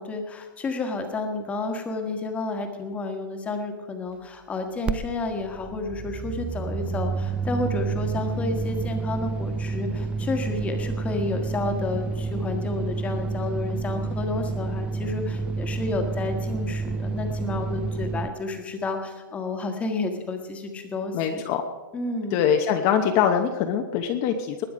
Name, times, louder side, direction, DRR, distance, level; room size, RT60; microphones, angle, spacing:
voice 1, 0.0-21.4 21.9-22.4, left 3 dB, 10° left, 5 dB, 1.5 m, -31 dB
sound 1, 4.9-5.0 5.2-18.3, right 4 dB, 10° right, 0.3 m, -29 dB
voice 2, 21.1-21.6 22.3-24.6, left 8 dB, 30° left, 5 dB, 0.9 m, -23 dB
20.5 x 9.1 x 5.1 m, 1.3 s
hypercardioid pair, 155°, 11 cm